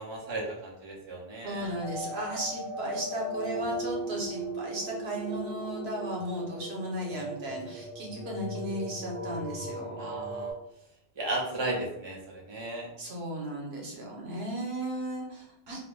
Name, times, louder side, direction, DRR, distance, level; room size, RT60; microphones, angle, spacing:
voice 1, 0.0-1.7 10.0-10.5 11.2-12.9, right 2 dB, 35° right, -3 dB, 0.5 m, -35 dB
voice 2, 1.4-10.0 13.0-15.8, right 1 dB, 85° right, -2 dB, 1.0 m, -35 dB
sound 1, 1.8-10.5, right 1 dB, 65° right, 0.8 m, -37 dB
2.4 x 2.1 x 3.1 m, 0.78 s
omnidirectional pair, 1.1 m